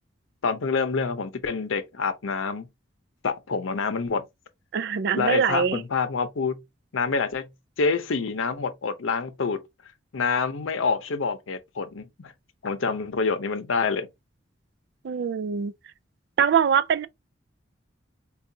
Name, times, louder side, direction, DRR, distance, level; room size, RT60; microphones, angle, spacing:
voice 1, 0.4-2.7 3.2-4.2 5.2-6.6 6.9-7.5 7.8-9.6 10.1-12.3 12.6-14.1, left 4 dB, 90° left, 0.7 m, -27 dB
voice 2, 4.7-5.8 15.0-15.7 16.4-17.1, right 7 dB, 60° right, 0.3 m, -23 dB
4.7 x 2.3 x 2.7 m
head